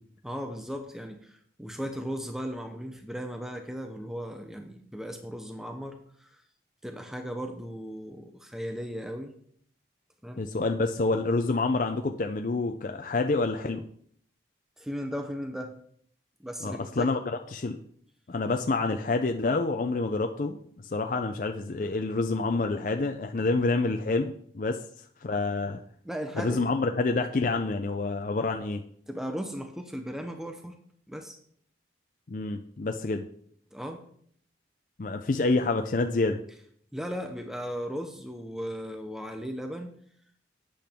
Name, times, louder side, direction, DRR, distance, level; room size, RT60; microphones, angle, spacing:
voice 1, 0.2-6.4 6.8-9.3 10.2-10.4 14.8-15.7 16.4-17.1 26.0-26.7 29.1-30.8 31.1-31.4 33.7-34.0 36.9-40.0, equal, ahead, 5 dB, 0.6 m, -36 dB
voice 2, 10.4-13.8 16.6-17.2 17.5-17.8 18.3-20.6 20.8-25.8 26.4-28.8 32.3-33.3 35.0-36.4, left 3 dB, 45° left, 5 dB, 0.5 m, -28 dB
11.5 x 8.5 x 3.6 m, 0.63 s
head